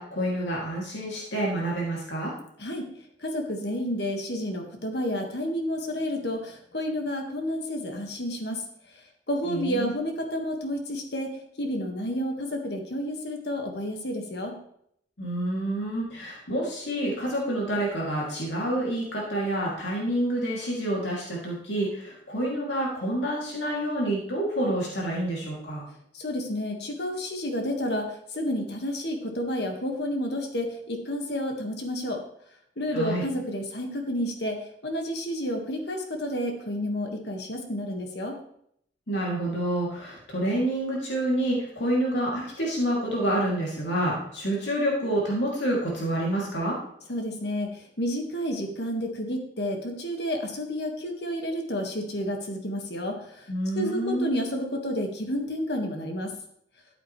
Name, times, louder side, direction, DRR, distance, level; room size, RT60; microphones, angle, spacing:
voice 1, 0.0-2.3 9.4-10.0 15.2-25.8 32.9-33.2 39.1-46.8 53.5-54.3, right 1 dB, 80° left, -3 dB, 2.8 m, -28 dB
voice 2, 3.2-8.6 9.3-11.3 11.6-14.6 26.1-28.1 28.3-32.2 32.8-34.6 34.8-38.4 47.1-53.5 53.8-56.3, equal, 60° left, 3 dB, 1.8 m, -30 dB
13.5 x 8.1 x 3.3 m, 0.70 s
head